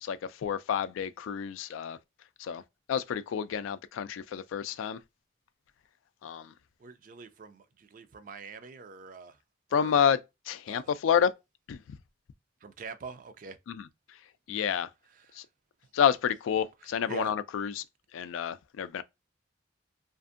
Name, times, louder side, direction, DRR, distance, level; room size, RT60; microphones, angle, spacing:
voice 1, 0.0-2.0 2.4-2.6 2.9-5.0 6.2-6.5 9.7-10.2 10.5-11.3 11.7-12.0 13.7-13.9 14.5-14.9 15.3-15.5 15.9-17.8 18.1-19.0, left 8 dB, 85° left, 0.3 m, -29 dB
voice 2, 6.8-9.4 9.7-10.0 10.7-10.9 12.6-13.6 15.2-15.4 17.1-17.3, right 4 dB, 45° right, 0.3 m, -44 dB
2.5 x 2.5 x 2.4 m
head